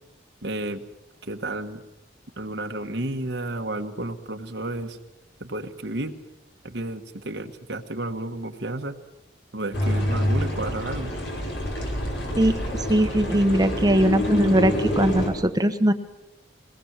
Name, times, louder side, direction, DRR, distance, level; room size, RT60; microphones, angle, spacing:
voice 1, 0.4-0.8 1.2-1.8 2.4-5.0 5.4-6.1 6.6-9.0 9.5-11.1, right 2 dB, 70° right, 4 dB, 1.5 m, -31 dB
sound 1, 9.7-15.3, left 1 dB, 75° left, 6.0 m, -27 dB
voice 2, 12.9-15.9, right 1 dB, 20° right, 8 dB, 1.2 m, -20 dB
22.0 x 19.0 x 7.5 m, 0.94 s
head